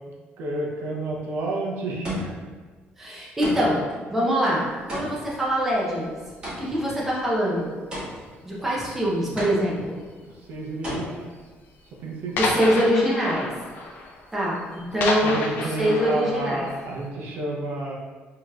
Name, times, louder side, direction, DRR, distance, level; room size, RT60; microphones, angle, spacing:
voice 1, 0.4-2.3 10.5-11.3 12.0-12.4 15.2-17.9, right 2 dB, 65° right, -3 dB, 0.7 m, -30 dB
sound 1, 2.0-2.6 3.4-3.9 4.9-6.9 7.9-8.5 9.4-10.0 10.8-11.0, equal, 25° right, 1.5 m, -34 dB
voice 2, 3.0-3.8 4.1-6.1 6.6-7.8 8.4-9.9 12.4-13.5 14.3-16.6, equal, 5° right, -6 dB, 0.7 m, -24 dB
sound 2, 4.7-4.9 5.7-6.1 6.4-6.8 7.2-7.4 7.9-8.0 8.2-8.3 9.1-9.6 10.4-10.5 10.9-11.0 11.3-11.4 11.7-11.8 12.4-17.1, left 3 dB, 55° left, 0.5 m, -31 dB
4.9 x 2.9 x 2.4 m, 1.4 s
cardioid pair, 175°, 4 cm